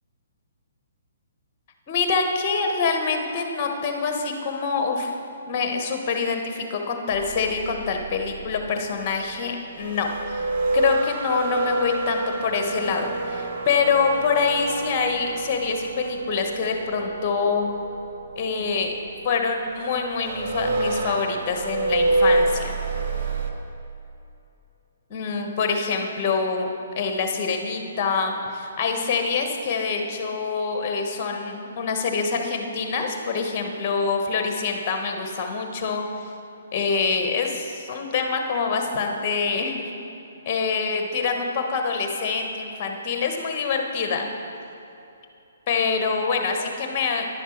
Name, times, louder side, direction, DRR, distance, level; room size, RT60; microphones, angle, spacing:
voice 1, 1.9-5.2 5.5-17.7 18.4-18.9 19.2-22.7 25.1-26.7 27.0-36.1 36.7-39.8 40.4-44.3 45.7-47.3, left 5 dB, 30° left, 4 dB, 1.3 m, -25 dB
sound 1, 7.1-23.5, right 2 dB, 45° right, 0.9 m, -28 dB
11.0 x 10.5 x 4.5 m, 2.8 s
figure-of-eight pair, 130°, 0 cm